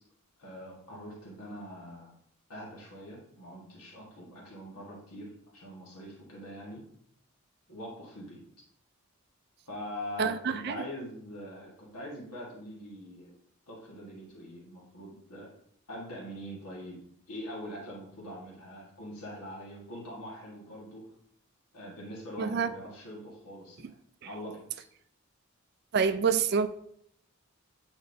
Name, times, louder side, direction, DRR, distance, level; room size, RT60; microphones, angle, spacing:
voice 1, 0.4-2.1 2.5-6.8 7.7-8.4 9.6-13.3 13.7-15.5 15.9-17.0 17.3-21.0 21.7-24.0 24.2-24.7, equal, 90° left, 1.6 m, -43 dB
voice 2, 10.2-10.8 22.4-22.7 25.9-26.7, right 6 dB, 45° right, 0.3 m, -27 dB
8.5 x 4.4 x 2.7 m
head